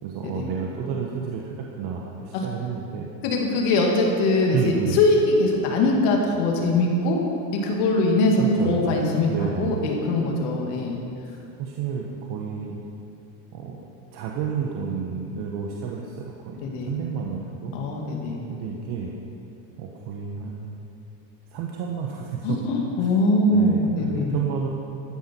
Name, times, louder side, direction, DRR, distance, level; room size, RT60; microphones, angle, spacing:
voice 1, 0.0-3.1 4.5-5.0 8.4-10.0 11.6-12.8 13.5-13.9 14.1-17.7 18.5-19.1 19.8-20.9 21.5-22.6 23.0-23.1 23.5-24.7, right 6 dB, 60° right, -1 dB, 1.4 m, -31 dB
voice 2, 3.2-7.2 7.5-11.0 16.6-16.9 17.7-18.4 22.4-24.4, left 2 dB, 75° left, 0 dB, 2.3 m, -22 dB
13.5 x 9.8 x 4.6 m, 2.6 s
supercardioid pair, 100°, 43 cm